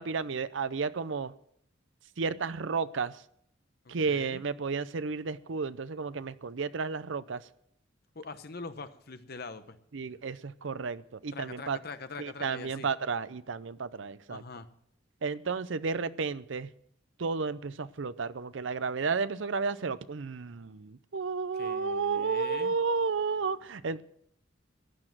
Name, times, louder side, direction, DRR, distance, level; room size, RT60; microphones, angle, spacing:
voice 1, 0.0-1.3 2.2-3.2 3.9-7.4 9.9-11.8 12.2-14.4 15.2-16.7 17.2-24.0, right 5 dB, 70° right, 15 dB, 0.6 m, -32 dB
voice 2, 3.8-4.4 8.1-9.8 11.3-12.9 14.3-14.7 21.6-22.8, left 3 dB, 50° left, 10 dB, 1.0 m, -43 dB
15.0 x 9.9 x 6.1 m, 0.70 s
head